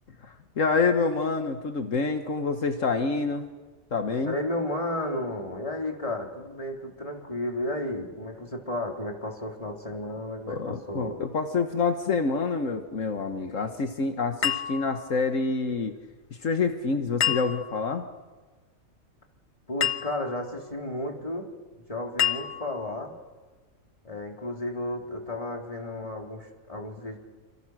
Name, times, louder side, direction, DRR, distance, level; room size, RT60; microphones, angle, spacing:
voice 1, 0.2-3.5 3.9-4.3 10.5-15.9 16.3-18.0, left 4 dB, 75° left, 6 dB, 1.8 m, -27 dB
voice 2, 4.2-11.2 19.7-21.5 21.9-23.1 24.0-27.2, left 1 dB, 25° left, 1 dB, 3.8 m, -33 dB
sound 1, 14.4-15.4 17.2-18.0 19.8-20.5 22.2-23.0, left 10 dB, 55° left, 1.3 m, -29 dB
29.0 x 26.5 x 6.3 m, 1.3 s
omnidirectional pair, 1.4 m